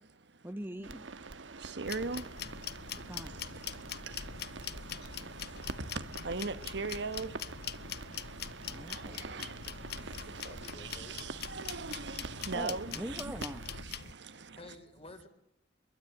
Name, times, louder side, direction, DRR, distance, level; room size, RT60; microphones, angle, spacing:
voice 1, 0.4-1.1 3.0-3.4 8.6-9.3 12.5-13.7, right 1 dB, 10° right, 1.0 m, -42 dB
sound 1, 0.8-13.8, right 3 dB, 85° right, 1.2 m, -46 dB
voice 2, 1.6-2.2 6.2-7.3 8.9-9.5 10.4-13.2, right 4 dB, 65° right, 1.2 m, -38 dB
sound 2, 1.8-14.1, left 8 dB, 60° left, 0.8 m, -43 dB
voice 3, 10.5-11.4 14.6-15.3, left 2 dB, 30° left, 3.4 m, -51 dB
23.5 x 22.5 x 9.0 m
head